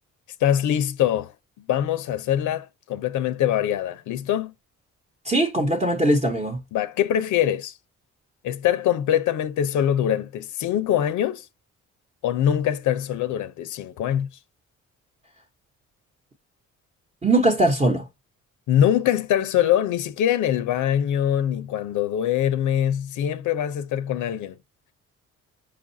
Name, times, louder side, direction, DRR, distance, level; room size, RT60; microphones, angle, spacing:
voice 1, 0.4-1.3 1.7-4.5 6.7-7.7 8.4-11.5 12.2-14.3 18.7-24.6, left 10 dB, 80° left, 0.7 m, -23 dB
voice 2, 5.2-6.6 17.2-18.1, right 1 dB, 25° right, 0.9 m, -20 dB
5.4 x 2.4 x 2.7 m
cardioid pair, 90°, 30 cm